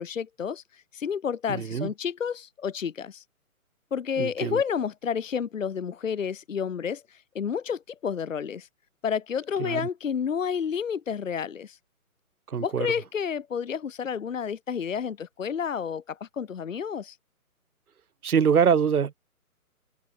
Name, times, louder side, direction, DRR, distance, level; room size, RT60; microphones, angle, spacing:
voice 1, 0.0-3.2 3.9-8.7 9.0-11.8 12.6-17.2, left 7 dB, 60° left, 1.4 m, -30 dB
voice 2, 1.5-1.9 4.2-4.6 9.6-9.8 12.5-12.9 18.2-19.1, right 7 dB, 75° right, 1.4 m, -24 dB
hypercardioid pair, 170°, 44 cm